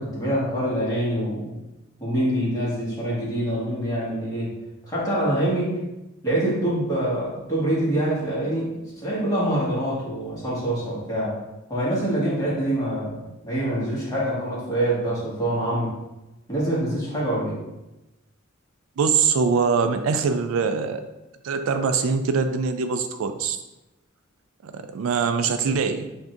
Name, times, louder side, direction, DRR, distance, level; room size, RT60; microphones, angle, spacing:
voice 1, 0.0-1.6 2.0-4.5 4.8-5.7 6.2-11.3 11.7-15.9 16.5-17.6, right 1 dB, 15° left, -7 dB, 1.5 m, -25 dB
voice 2, 19.0-21.1 21.4-23.6 24.6-26.1, right 5 dB, 75° right, 8 dB, 0.4 m, -23 dB
7.2 x 2.7 x 2.5 m, 0.99 s
head